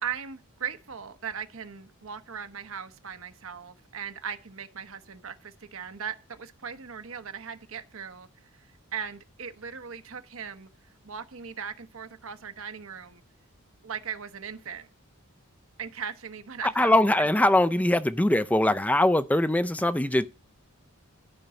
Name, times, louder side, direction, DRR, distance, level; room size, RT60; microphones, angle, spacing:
voice 1, 0.0-8.3 8.6-10.7 11.0-13.2 13.8-14.9 15.8-17.3, right 7 dB, 65° right, 0.9 m, -38 dB
voice 2, 16.6-20.2, left 1 dB, 5° left, 0.4 m, -22 dB
12.0 x 5.3 x 6.9 m
head